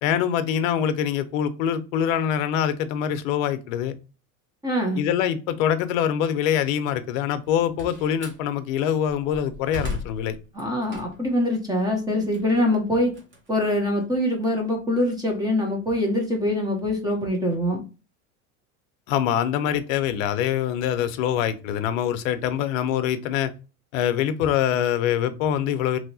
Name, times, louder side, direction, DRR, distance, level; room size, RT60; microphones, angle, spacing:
voice 1, 0.0-3.9 5.0-10.4 19.1-23.5 23.9-26.0, left 9 dB, 65° left, 0.6 m, -24 dB
voice 2, 4.6-5.0 10.5-13.1 13.5-17.8, left 1 dB, 10° right, 0.6 m, -24 dB
Slam, 7.4-8.5 9.0-11.4 11.8-14.2, left 2 dB, 25° right, 1.1 m, -37 dB
3.0 x 2.7 x 2.7 m
supercardioid pair, 125°, 43 cm